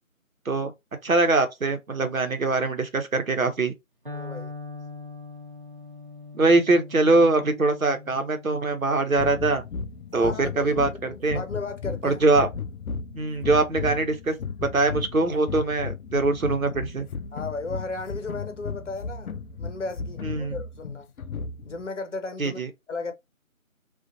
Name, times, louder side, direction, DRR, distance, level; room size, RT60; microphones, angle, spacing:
voice 1, 1.0-3.7 6.3-9.6 10.1-11.4 12.0-12.5 13.1-14.3 14.7-17.1 20.2-20.6 22.4-22.7, right 3 dB, 75° right, 0.9 m, -23 dB
voice 2, 4.1-4.5 10.2-12.2 17.3-19.3 19.6-21.1 21.7-22.6 22.9-23.1, left 3 dB, 60° left, 0.8 m, -35 dB
Electric guitar, 4.1-11.9, left 3 dB, 40° right, 0.8 m, -43 dB
sound 1, 9.2-21.9, left 5 dB, 80° left, 0.5 m, -35 dB
2.6 x 2.5 x 2.5 m
figure-of-eight pair, 170°, 42 cm